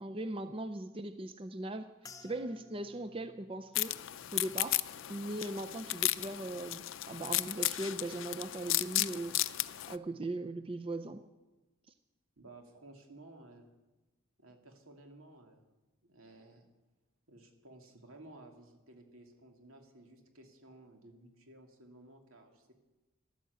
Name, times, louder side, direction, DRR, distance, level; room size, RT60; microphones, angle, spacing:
voice 1, 0.0-1.9 2.2-3.9 4.3-4.8 5.1-9.4 9.9-11.2, right 2 dB, 25° right, 9 dB, 0.5 m, -39 dB
Brass Bowl, 2.0-6.6 6.9-7.5 8.1-8.4, left 4 dB, 15° left, 0.8 m, -60 dB
sound 1, 3.7-9.9, left 16 dB, 70° left, 0.5 m, -34 dB
voice 2, 12.4-13.7 14.4-15.6 16.0-16.7 17.3-22.7, right 2 dB, 80° right, 3 dB, 2.7 m, -55 dB
13.5 x 12.0 x 8.0 m, 1.1 s
head